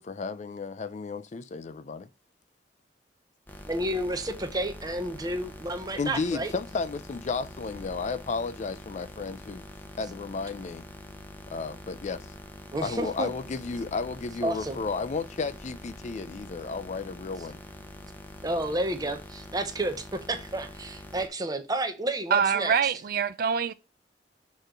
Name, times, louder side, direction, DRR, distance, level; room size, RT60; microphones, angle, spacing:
voice 1, 0.0-2.1 6.0-9.6 10.0-10.8 11.5-12.3 12.8-17.6, left 4 dB, 40° left, 0.4 m, -33 dB
sound 1, 3.5-21.3, left 1 dB, 10° left, 0.7 m, -45 dB
voice 2, 3.7-6.5 12.7-13.3 14.4-14.8 18.4-22.7, right 1 dB, 20° right, 0.8 m, -31 dB
voice 3, 22.3-23.7, right 7 dB, 55° right, 0.4 m, -25 dB
6.6 x 3.1 x 5.0 m
head